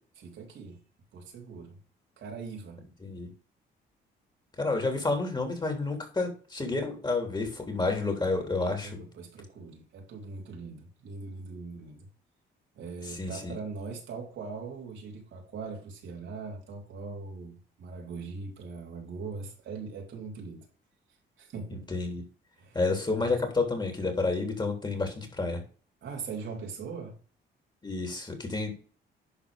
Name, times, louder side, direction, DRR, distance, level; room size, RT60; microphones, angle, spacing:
voice 1, 0.2-0.8 1.1-1.8 2.2-2.8 8.8-12.1 12.7-20.7 21.4-21.8 22.6-22.8 23.2-23.3 26.0-27.2, right 4 dB, 70° right, 3.4 m, -41 dB
voice 2, 4.6-9.0 13.0-13.6 21.7-22.2 22.7-25.6 27.8-28.7, left 3 dB, 20° left, 3.5 m, -30 dB
11.0 x 4.2 x 5.2 m
cardioid pair, 90°, 20 cm